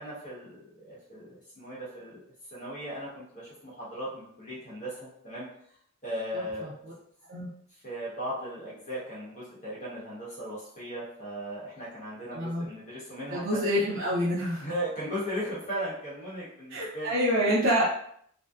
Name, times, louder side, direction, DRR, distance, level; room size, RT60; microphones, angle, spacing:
voice 1, 0.0-2.2 2.5-5.5 6.0-6.7 7.8-13.6 14.6-17.2 17.5-17.6, equal, 35° left, -8 dB, 0.9 m, -37 dB
voice 2, 6.3-6.7 7.3-7.5 12.3-12.7 13.3-14.6 16.7-17.8, equal, 60° right, -9 dB, 0.6 m, -27 dB
2.6 x 2.1 x 2.3 m, 0.66 s
head